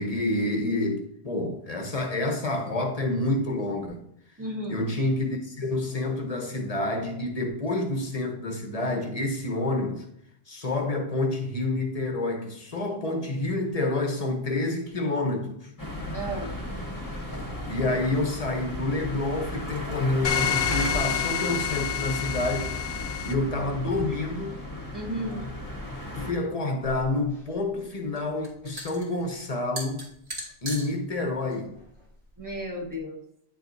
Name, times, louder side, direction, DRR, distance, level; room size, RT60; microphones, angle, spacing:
voice 1, 0.0-4.0 4.7-10.0 10.5-15.7 17.7-22.7 23.2-24.6 26.2-30.0 30.6-31.8, left 2 dB, 35° left, 1.0 m, -28 dB
voice 2, 4.4-4.8 16.1-16.5 24.9-25.5 32.4-33.2, right 1 dB, 15° right, 1.4 m, -33 dB
sound 1, 15.8-26.3, left 1 dB, 20° left, 1.3 m, -35 dB
sound 2, 20.2-23.3, left 8 dB, 70° left, 0.9 m, -28 dB
sound 3, 26.8-33.0, right 1 dB, 65° right, 2.1 m, -41 dB
9.8 x 4.6 x 2.7 m
omnidirectional pair, 1.1 m